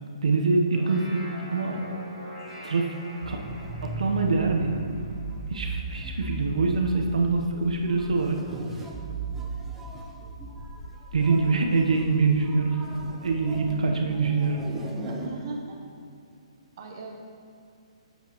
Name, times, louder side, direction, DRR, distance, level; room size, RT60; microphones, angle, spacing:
voice 1, 0.2-1.2 1.5-1.8 2.6-2.9 3.3-3.4 3.8-4.8 5.5-8.4 11.1-12.8 13.2-14.6, right 4 dB, 90° right, 2 dB, 0.9 m, -24 dB
sound 1, 0.5-6.1, equal, 5° left, 1.9 m, -44 dB
sound 2, 3.2-15.3, right 2 dB, 10° right, 0.5 m, -37 dB
voice 2, 15.0-15.8 16.8-17.1, right 3 dB, 40° right, 0 dB, 0.8 m, -38 dB
8.4 x 7.3 x 3.0 m, 2.5 s
hypercardioid pair, 165°, 3 cm